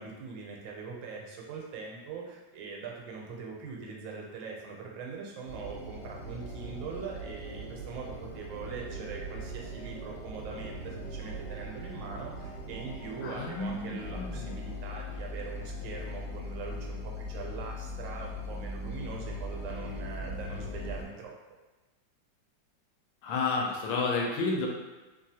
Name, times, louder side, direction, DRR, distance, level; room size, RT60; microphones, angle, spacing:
voice 1, 0.0-21.4, right 4 dB, 80° right, -1 dB, 1.3 m, -42 dB
sound 1, 5.5-21.1, right 3 dB, 65° left, 1.1 m, -42 dB
voice 2, 13.2-14.5 23.2-24.7, left 3 dB, 80° left, -1 dB, 1.3 m, -31 dB
Mechanical fan, 14.0-21.0, left 6 dB, 60° right, 0.5 m, -40 dB
3.2 x 2.3 x 2.7 m, 1.2 s
omnidirectional pair, 2.0 m